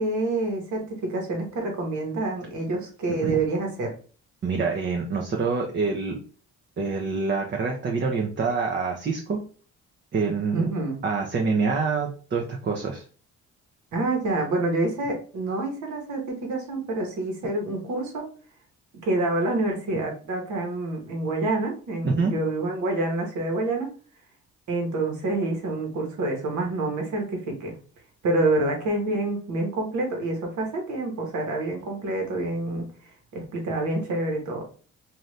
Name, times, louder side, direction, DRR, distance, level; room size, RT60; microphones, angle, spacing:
voice 1, 0.0-3.9 10.5-11.0 13.9-18.3 19.0-23.9 24.7-27.8 28.2-34.7, right 2 dB, 75° right, 2 dB, 1.3 m, -27 dB
voice 2, 4.4-6.2 6.8-9.4 10.1-10.7 11.0-13.0 22.0-22.3, right 4 dB, 35° right, 1 dB, 0.7 m, -26 dB
2.7 x 2.6 x 3.2 m, 0.39 s
cardioid pair, 90°, 30 cm